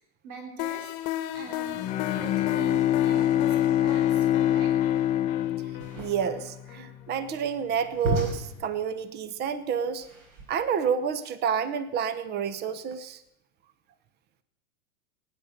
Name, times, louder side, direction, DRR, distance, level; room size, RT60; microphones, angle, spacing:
voice 1, 0.2-1.0 1.3-1.9 2.2-4.7, right 4 dB, 80° right, 3 dB, 3.4 m, -43 dB
sound 1, 0.6-7.4, left 13 dB, 45° left, 1.3 m, -37 dB
Bowed string instrument, 1.7-6.6, left 12 dB, 15° left, 0.6 m, -25 dB
sound 2, 5.7-10.8, right 2 dB, 60° right, 5.1 m, -35 dB
voice 2, 6.0-10.1 10.5-13.2, right 7 dB, 25° right, 14 dB, 0.9 m, -29 dB
19.0 x 10.0 x 6.6 m, 0.84 s
hypercardioid pair, 135°, 43 cm